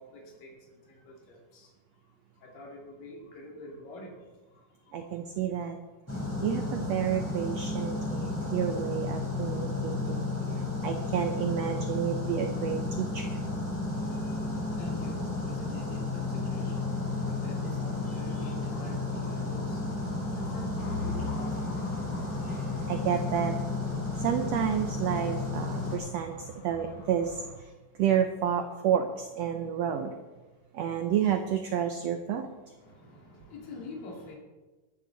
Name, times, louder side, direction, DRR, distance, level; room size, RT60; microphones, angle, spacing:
voice 1, 0.0-1.7 2.4-5.2 13.8-22.4 32.8-34.4, left 2 dB, 80° left, -2 dB, 4.3 m, -46 dB
voice 2, 4.9-5.8 6.4-10.3 10.8-13.4 22.9-23.6 24.2-30.1 30.7-32.5, right 9 dB, 75° right, 6 dB, 1.5 m, -30 dB
sound 1, 6.1-26.0, left 3 dB, 5° left, 3.7 m, -32 dB
sound 2, 20.8-27.5, left 5 dB, 60° left, 4.9 m, -43 dB
22.5 x 9.8 x 4.0 m, 1.2 s
omnidirectional pair, 3.9 m